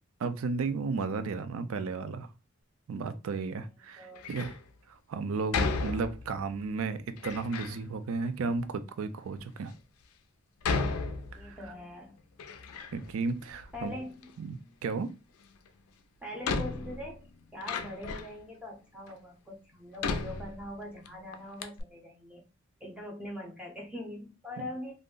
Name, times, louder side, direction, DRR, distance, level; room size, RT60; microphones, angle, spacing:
voice 1, 0.2-2.3 2.9-4.5 4.9-9.7 11.3-11.6 12.9-13.9 14.4-14.6 14.8-15.1 24.6-24.7, right 4 dB, 70° right, 0.4 m, -34 dB
voice 2, 4.0-4.3 11.2-12.2 13.7-14.3 16.2-17.3 17.5-22.4 22.8-24.9, left 1 dB, 5° right, 0.5 m, -42 dB
Door, 4.1-4.6 5.5-6.5 7.2-7.8 8.6-8.7 9.4-9.5 10.6-11.8 12.1-13.2 13.5-14.3 15.7-15.8 16.4-18.4 19.1-19.2 20.0-21.1 21.3-21.4 21.6-21.8, left 4 dB, 80° left, 0.4 m, -34 dB
2.5 x 2.0 x 3.6 m
head